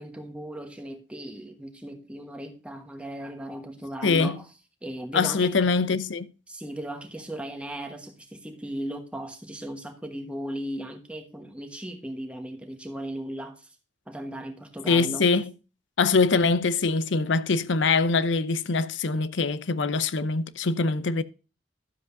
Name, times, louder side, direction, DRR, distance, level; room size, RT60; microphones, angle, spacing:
voice 1, 0.0-4.4 4.8-5.5 6.5-13.7 14.1-15.3, right 1 dB, 5° right, 1.2 m, -37 dB
voice 2, 4.0-4.3 5.1-6.3 14.9-15.5 16.0-21.2, left 4 dB, 75° left, 0.6 m, -23 dB
12.0 x 7.6 x 2.6 m
head